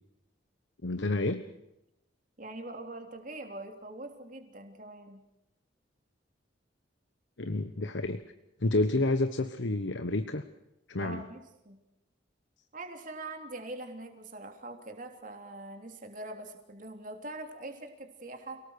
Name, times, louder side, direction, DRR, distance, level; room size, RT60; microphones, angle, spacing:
voice 1, 0.8-1.5 7.4-8.2 8.6-10.4 10.9-11.2, left 2 dB, 75° left, 10 dB, 1.2 m, -29 dB
voice 2, 2.4-5.2 11.0-11.8 12.7-18.6, right 2 dB, 45° right, 4 dB, 3.5 m, -43 dB
29.0 x 19.0 x 6.6 m, 0.88 s
head